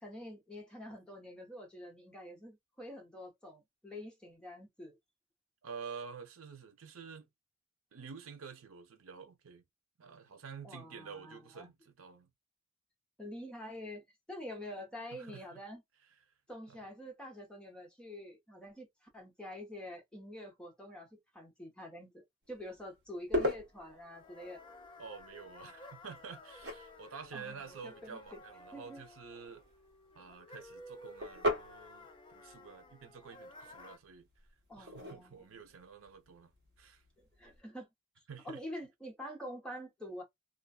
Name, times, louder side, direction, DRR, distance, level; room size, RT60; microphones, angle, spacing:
voice 1, 0.0-5.0 10.6-11.7 13.2-15.8 16.5-24.6 27.3-28.2 28.7-29.0 34.7-35.7 37.2-37.9 38.4-40.2, left 1 dB, 5° left, 1.0 m, -47 dB
voice 2, 5.6-7.3 7.9-9.6 10.0-12.3 15.1-15.6 16.7-16.8 25.0-29.6 30.1-34.3 34.8-37.0 38.3-38.6, right 6 dB, 80° right, 0.6 m, -49 dB
sound 1, 22.4-37.6, left 1 dB, 55° right, 1.1 m, -42 dB
sound 2, 23.7-34.0, left 2 dB, 25° left, 0.5 m, -55 dB
2.5 x 2.3 x 2.3 m
head